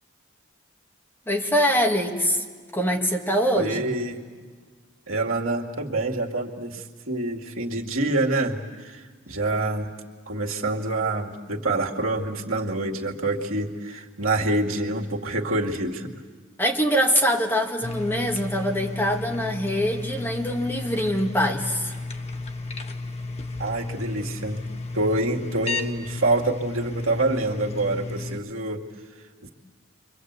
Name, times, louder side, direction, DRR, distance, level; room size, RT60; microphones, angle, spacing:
voice 1, 1.3-2.4 2.7-4.0 16.6-21.9, equal, 10° left, 1 dB, 2.0 m, -24 dB
voice 2, 3.5-4.2 5.1-9.9 10.3-16.1 23.6-24.6 24.9-28.8 29.4-29.5, right 2 dB, 90° right, 0 dB, 2.2 m, -26 dB
sound 1, 17.8-28.4, left 3 dB, 30° left, 1.2 m, -33 dB
29.5 x 24.5 x 8.1 m, 1.5 s
head